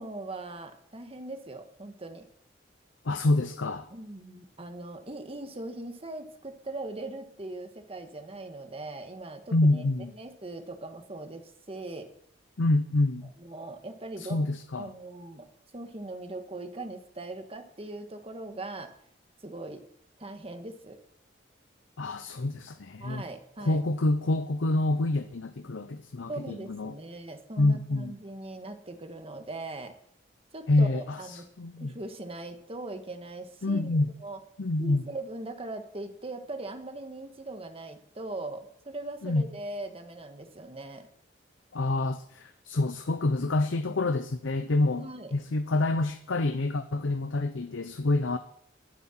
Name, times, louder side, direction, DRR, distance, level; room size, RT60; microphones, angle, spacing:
voice 1, 0.0-2.3 3.9-9.9 10.1-12.1 13.4-14.5 14.8-15.4 15.7-18.9 19.4-19.8 20.2-21.0 23.0-23.8 26.3-29.9 30.5-31.5 31.8-34.4 34.8-41.1 45.0-45.3, right 2 dB, 30° right, 7 dB, 1.5 m, -40 dB
voice 2, 3.0-3.9 9.5-10.1 12.6-13.3 14.2-14.9 22.0-23.2 23.6-26.9 27.6-28.1 30.7-31.9 33.6-34.1 34.6-35.0 39.2-39.4 41.7-48.4, left 2 dB, 90° left, 9 dB, 0.7 m, -27 dB
21.5 x 7.6 x 4.4 m, 0.66 s
head